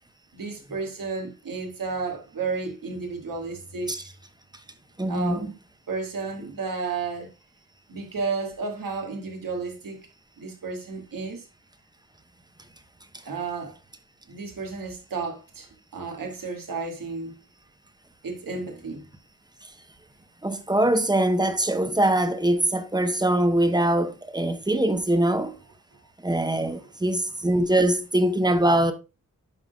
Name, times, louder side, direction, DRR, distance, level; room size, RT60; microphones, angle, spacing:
voice 1, 0.3-4.1 5.1-5.6 5.9-7.3 7.9-10.0 10.4-11.4 13.2-13.8 14.3-17.4 18.2-19.1 25.9-26.0 26.7-26.9, right 4 dB, 85° right, 2.4 m, -32 dB
voice 2, 5.0-5.5 20.4-25.5 26.2-28.9, right 1 dB, 15° right, 1.0 m, -22 dB
11.0 x 5.9 x 2.3 m
wide cardioid pair, 155°, 33 cm